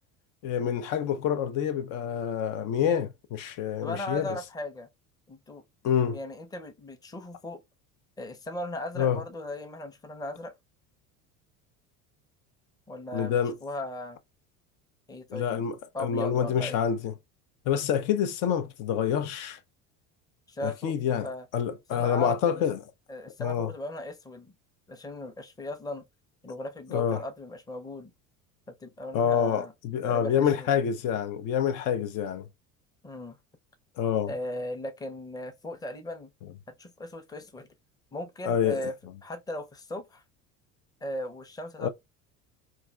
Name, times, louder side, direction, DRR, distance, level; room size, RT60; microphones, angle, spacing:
voice 1, 0.4-4.4 5.8-6.2 9.0-9.2 13.1-13.5 15.3-17.1 17.7-19.6 20.6-21.3 21.5-22.8 23.4-23.7 26.9-27.2 29.1-32.5 34.0-34.3 38.4-38.8 41.8-41.9, left 8 dB, 60° left, 0.5 m, -27 dB
voice 2, 3.8-4.9 5.3-5.6 6.0-7.6 8.2-10.5 12.9-14.2 15.1-15.6 15.9-16.8 20.5-21.5 21.9-22.6 23.1-24.5 24.9-26.0 26.4-28.1 28.7-29.7 30.0-30.7 33.0-33.4 34.3-36.3 36.8-37.7 38.1-38.9 39.2-40.2 41.0-41.9, left 1 dB, 10° left, 0.6 m, -37 dB
3.2 x 2.4 x 2.2 m
supercardioid pair, 90°, 37 cm